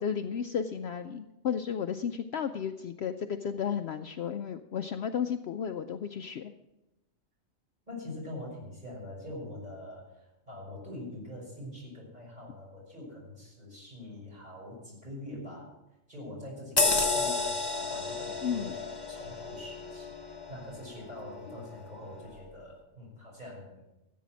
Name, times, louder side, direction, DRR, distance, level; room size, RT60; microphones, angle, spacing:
voice 1, 0.0-6.5 18.4-18.7, left 7 dB, 65° left, 8 dB, 0.8 m, -33 dB
voice 2, 7.9-15.7 16.1-18.8 19.1-23.8, left 1 dB, 30° right, -3 dB, 6.0 m, -44 dB
sound 1, 16.8-21.7 22.2-22.3, left 3 dB, 20° left, 1.1 m, -32 dB
14.5 x 8.4 x 6.1 m, 0.95 s
omnidirectional pair, 1.3 m